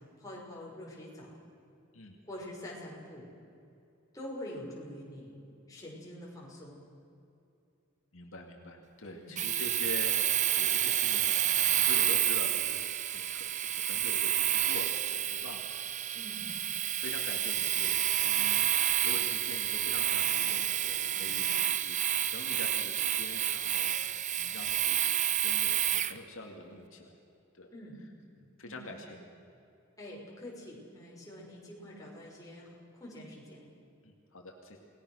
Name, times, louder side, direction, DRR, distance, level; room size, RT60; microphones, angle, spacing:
voice 1, 0.0-1.3 2.2-3.3 4.1-5.4 5.7-6.8 9.1-9.3 16.1-16.5 21.1-21.4 27.7-28.0 28.6-28.9 30.0-33.7, left 1 dB, 15° left, -3 dB, 5.9 m, -45 dB
voice 2, 8.1-16.6 16.9-27.1 27.5-27.7 28.6-29.3 34.0-34.8, left 2 dB, 70° left, 1 dB, 2.5 m, -46 dB
Domestic sounds home sounds, 9.4-26.2, right 11 dB, 35° right, 0.7 m, -29 dB
28.5 x 20.0 x 6.5 m, 2.6 s
head